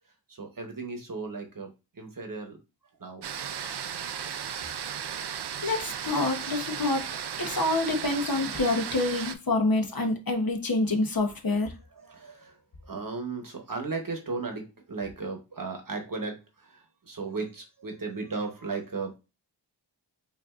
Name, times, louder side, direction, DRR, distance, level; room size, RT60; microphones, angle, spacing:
voice 1, 0.3-2.6 3.0-4.2 11.9-19.2, right 4 dB, 45° right, 1.0 m, -36 dB
sound 1, 3.2-9.3, right 8 dB, 60° right, 0.5 m, -35 dB
voice 2, 5.6-7.1 7.4-11.7, left 2 dB, 50° left, 0.9 m, -27 dB
5.2 x 2.6 x 2.4 m
wide cardioid pair, 60°, 45 cm